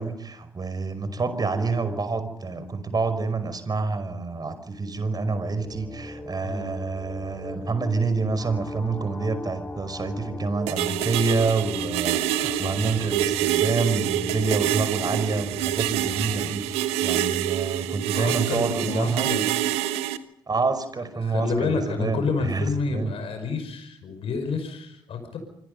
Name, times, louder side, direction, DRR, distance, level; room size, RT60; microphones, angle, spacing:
voice 1, 0.0-16.6 17.0-19.3 20.5-23.1, right 4 dB, 35° right, 11 dB, 5.4 m, -27 dB
sound 1, 5.1-16.6, left 2 dB, 20° left, 4.8 m, -39 dB
voice 2, 6.4-6.8 18.1-19.4 21.2-25.4, left 4 dB, 60° left, 7 dB, 5.5 m, -29 dB
sound 2, 10.7-20.2, right 13 dB, 75° right, 1.3 m, -26 dB
26.0 x 24.5 x 5.5 m, 0.74 s
hypercardioid pair, 45°, 11 cm